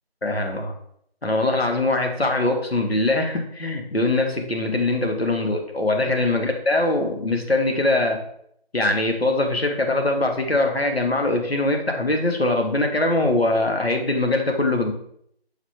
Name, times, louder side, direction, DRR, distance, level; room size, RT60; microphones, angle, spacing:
voice 1, 0.2-0.7 1.2-8.2 8.7-14.9, left 2 dB, 75° left, 3 dB, 1.5 m, -22 dB
7.3 x 5.2 x 3.3 m, 0.69 s
figure-of-eight pair, 170°, 31 cm